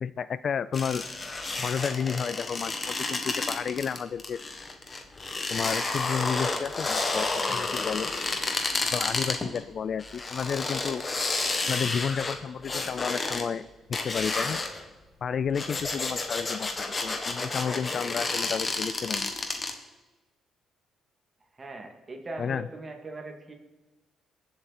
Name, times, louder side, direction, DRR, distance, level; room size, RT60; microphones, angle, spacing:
voice 1, 0.0-1.0 1.6-4.4 5.5-8.1 8.9-11.0 11.7-14.6 15.2-16.7 17.0-19.3 22.4-22.7, left 7 dB, 55° left, 16 dB, 0.4 m, -31 dB
sound 1, 0.7-9.6 10.0-13.4 13.9-14.8 15.4-19.7, left 3 dB, 30° left, 1.8 m, -31 dB
voice 2, 21.6-23.5, right 2 dB, 30° right, 3 dB, 2.6 m, -40 dB
23.5 x 7.9 x 4.3 m, 1.2 s
cardioid pair, 90°, 0 cm